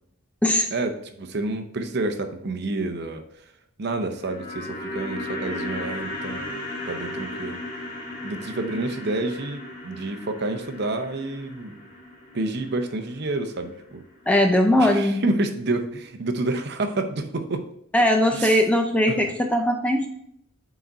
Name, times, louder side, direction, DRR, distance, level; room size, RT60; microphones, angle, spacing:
voice 1, 1.2-3.2 3.8-6.5 6.9-7.6 8.2-11.8 12.3-14.0 14.8-17.7 18.3-18.6 19.1-19.2, right 2 dB, 50° right, 7 dB, 0.7 m, -29 dB
sound 1, 4.0-14.2 14.5-14.6, left 2 dB, 35° left, 2.2 m, -36 dB
voice 2, 14.3-15.2 17.9-20.1, left 1 dB, 5° left, 3 dB, 0.4 m, -20 dB
6.2 x 4.1 x 4.6 m, 0.72 s
head